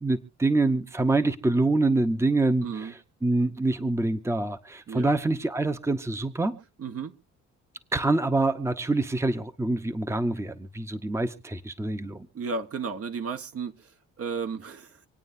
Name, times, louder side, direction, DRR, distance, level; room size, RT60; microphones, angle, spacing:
voice 1, 0.0-2.9 3.2-6.6 7.9-12.3, right 2 dB, 10° right, 0.9 m, -25 dB
voice 2, 2.6-2.9 4.9-5.1 6.8-7.2 12.3-15.1, right 5 dB, 50° right, 1.2 m, -34 dB
26.5 x 9.0 x 2.7 m
cardioid pair, 90°, 30 cm